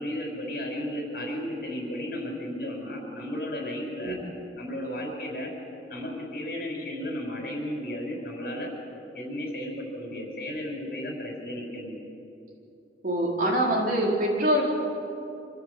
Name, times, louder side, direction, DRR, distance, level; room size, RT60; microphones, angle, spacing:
voice 1, 0.0-4.2 4.6-5.5 5.9-8.7 9.1-12.0, left 1 dB, 55° left, 0 dB, 5.9 m, -34 dB
voice 2, 13.0-14.7, right 1 dB, 50° right, -2 dB, 4.3 m, -24 dB
26.5 x 14.5 x 8.5 m, 2.8 s
head